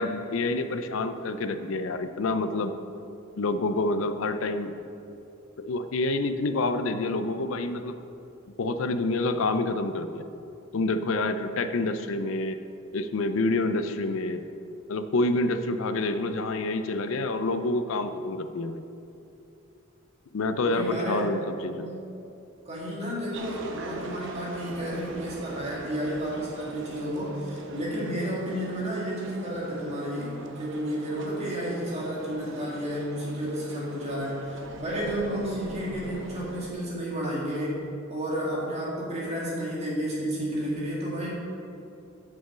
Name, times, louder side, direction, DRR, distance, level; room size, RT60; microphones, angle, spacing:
voice 1, 0.0-2.7 3.4-4.8 5.6-8.0 8.6-10.2 10.7-12.6 12.9-14.4 14.9-18.8 20.3-21.9, left 2 dB, 75° left, 9 dB, 0.5 m, -27 dB
voice 2, 20.6-21.2 21.6-22.0 22.7-37.8 38.1-41.3, equal, 30° right, -6 dB, 2.1 m, -31 dB
sound 1, 23.3-36.7, right 2 dB, 60° right, 0.8 m, -42 dB
6.6 x 6.2 x 7.1 m, 2.7 s
head